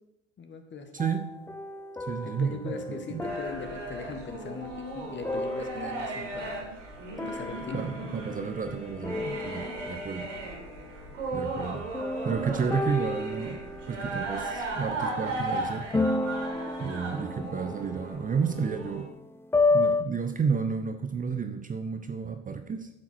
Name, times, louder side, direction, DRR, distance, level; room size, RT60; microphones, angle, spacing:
voice 1, 0.4-0.9 2.2-6.7 7.2-8.1, left 4 dB, 30° left, 7 dB, 1.6 m, -40 dB
voice 2, 0.9-1.3 2.1-3.3 7.7-10.3 11.3-11.9 12.2-13.6 13.9-16.1 16.8-19.1 19.7-22.9, right 6 dB, 20° right, 8 dB, 0.9 m, -31 dB
sound 1, 1.0-6.4 7.2-8.8 9.0-10.3 11.9-15.0 15.9-20.0, left 3 dB, 5° left, 0.5 m, -32 dB
sound 2, 3.2-19.0, right 2 dB, 80° right, 3.2 m, -36 dB
8.9 x 7.6 x 6.0 m, 0.88 s
hypercardioid pair, 70°, 37 cm